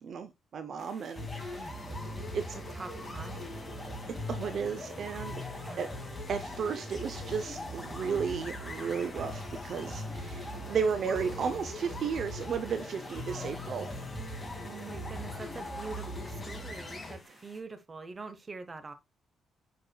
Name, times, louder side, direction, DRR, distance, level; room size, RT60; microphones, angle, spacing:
voice 1, 0.0-1.6 2.3-2.4 4.3-5.4 5.8-5.9 6.3-13.9, right 6 dB, 55° right, 0.5 m, -34 dB
sound 1, 0.8-17.6, left 1 dB, 5° left, 2.3 m, -57 dB
sound 2, 1.2-17.2, left 1 dB, 20° left, 2.2 m, -40 dB
voice 2, 1.6-2.1 2.5-3.5 5.6-5.9 13.3-14.1 14.6-18.9, right 4 dB, 25° right, 1.0 m, -45 dB
sound 3, 1.8-17.2, right 2 dB, 10° right, 1.9 m, -51 dB
9.1 x 4.8 x 2.3 m
cardioid pair, 125°, 0 cm